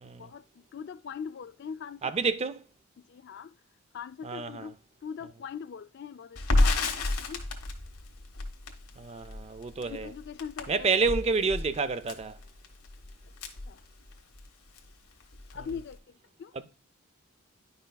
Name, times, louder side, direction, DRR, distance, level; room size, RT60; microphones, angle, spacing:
voice 1, 0.2-2.1 3.1-3.5 3.9-4.8 5.0-7.4 9.8-10.9 13.7-13.8 15.5-16.5, left 6 dB, 50° left, 0.3 m, -41 dB
voice 2, 2.0-2.6 4.2-4.7 9.0-10.1 10.7-12.4, right 4 dB, 30° right, 0.3 m, -29 dB
Crackle, 6.4-14.4 14.8-14.9 15.2-15.9, left 2 dB, 85° left, 1.2 m, -31 dB
10.0 x 5.5 x 2.2 m
head